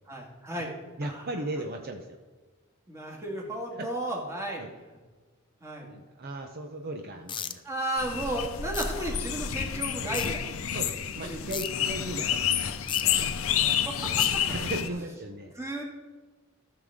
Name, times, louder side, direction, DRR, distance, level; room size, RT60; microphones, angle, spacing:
voice 1, 0.1-0.7 1.0-1.3 2.9-4.6 5.6-5.9 7.6-10.5 11.2-11.4 13.2-14.4 15.6-15.8, right 1 dB, 15° right, -1 dB, 2.2 m, -34 dB
voice 2, 1.0-2.2 3.8-3.9 4.6-4.7 5.8-7.6 10.7-13.3 14.4-15.5, right 1 dB, 45° right, 4 dB, 0.8 m, -37 dB
sound 1, 7.3-7.5 8.7-8.8 10.1-10.3 11.5-11.7 12.9-13.0 14.2-14.3, left 8 dB, 20° left, 0.5 m, -33 dB
sound 2, 8.0-14.9, left 9 dB, 70° left, 0.7 m, -29 dB
14.5 x 6.7 x 3.6 m, 1.4 s
head